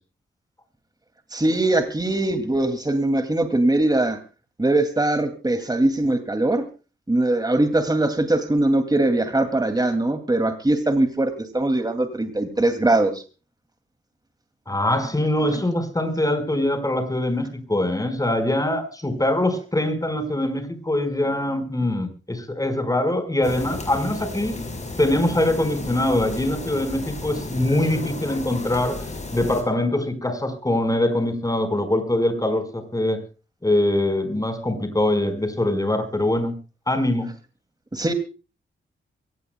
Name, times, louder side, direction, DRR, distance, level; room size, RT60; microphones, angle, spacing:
voice 1, 1.3-4.2 4.6-6.7 7.1-13.2 37.9-38.1, right 2 dB, 20° right, 7 dB, 2.6 m, -21 dB
voice 2, 14.7-24.6 25.0-33.2 33.6-36.5 36.9-37.3, left 1 dB, 15° left, 8 dB, 5.0 m, -23 dB
sound 1, 23.4-29.6, left 2 dB, 35° left, 5.8 m, -33 dB
24.0 x 18.5 x 2.3 m, 0.34 s
cardioid pair, 85°, 21 cm